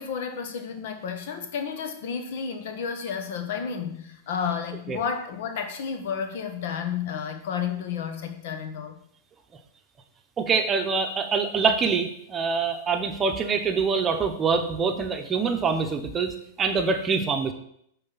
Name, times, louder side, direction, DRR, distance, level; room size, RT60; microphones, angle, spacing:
voice 1, 0.0-8.9, left 7 dB, 65° left, 6 dB, 1.2 m, -31 dB
voice 2, 10.4-17.5, right 5 dB, 25° right, 6 dB, 0.9 m, -25 dB
10.0 x 4.0 x 4.2 m, 0.69 s
hypercardioid pair, 115°, 0 cm